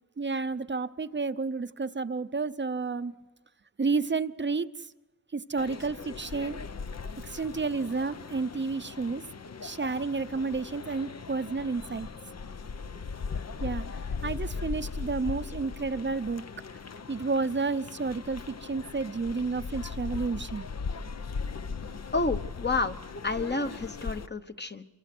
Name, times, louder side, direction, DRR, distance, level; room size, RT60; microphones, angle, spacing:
voice 1, 0.2-3.1 3.8-4.7 5.3-6.6 7.2-9.2 9.6-12.1 13.6-13.9 14.2-16.4 17.1-20.7, right 4 dB, 35° right, 12 dB, 0.7 m, -31 dB
sound 1, 5.6-24.3, left 5 dB, 50° left, 0.8 m, -38 dB
voice 2, 22.1-23.0 23.2-24.9, left 3 dB, 30° left, 8 dB, 1.1 m, -30 dB
26.5 x 23.5 x 6.1 m, 1.2 s
wide cardioid pair, 95°, 34 cm